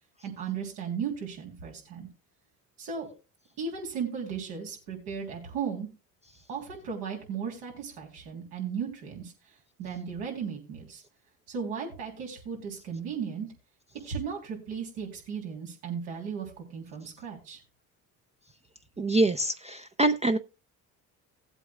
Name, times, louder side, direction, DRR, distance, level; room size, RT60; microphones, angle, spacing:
voice 1, 0.2-2.1 2.8-3.1 3.6-5.9 6.5-9.3 9.8-11.0 11.5-13.5 14.0-17.6, right 6 dB, 85° right, 3.4 m, -36 dB
voice 2, 19.0-20.4, right 2 dB, 15° right, 0.5 m, -25 dB
18.0 x 8.1 x 2.3 m
supercardioid pair, 70°, 42 cm